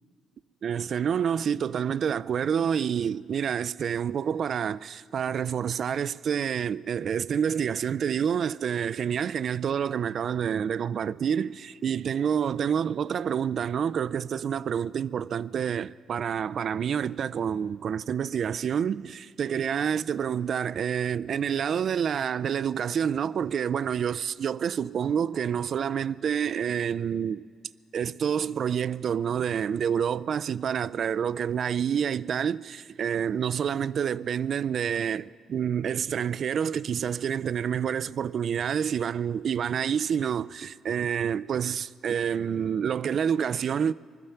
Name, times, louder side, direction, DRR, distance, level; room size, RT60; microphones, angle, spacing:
voice 1, 0.6-27.4 27.9-43.9, right 8 dB, 60° right, 0.3 m, -28 dB
20.0 x 12.5 x 5.7 m
cardioid pair, 90°, 0 cm